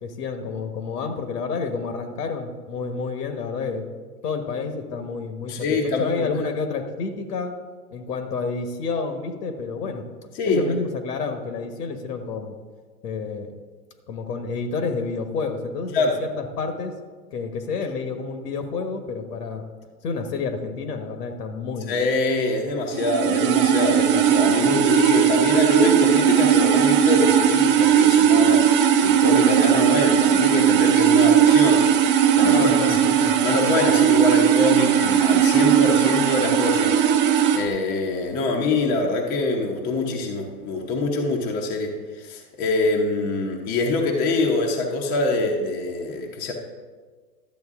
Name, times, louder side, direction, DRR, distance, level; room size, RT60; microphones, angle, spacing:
voice 1, 0.0-3.8 4.2-7.5 7.9-10.0 10.4-12.6 13.0-13.5 14.1-16.9 17.3-19.7 20.0-22.0 32.5-33.4, left 4 dB, 75° left, 6 dB, 1.5 m, -29 dB
voice 2, 5.5-6.4 10.3-10.8 15.9-16.2 21.9-28.7 29.0-31.9 32.3-32.7 33.4-37.0 37.5-46.5, left 3 dB, 20° left, 0 dB, 0.8 m, -24 dB
sound 1, 22.9-37.6, right 9 dB, 35° right, 0.9 m, -18 dB
12.0 x 7.6 x 3.6 m, 1.5 s
hypercardioid pair, 150°, 48 cm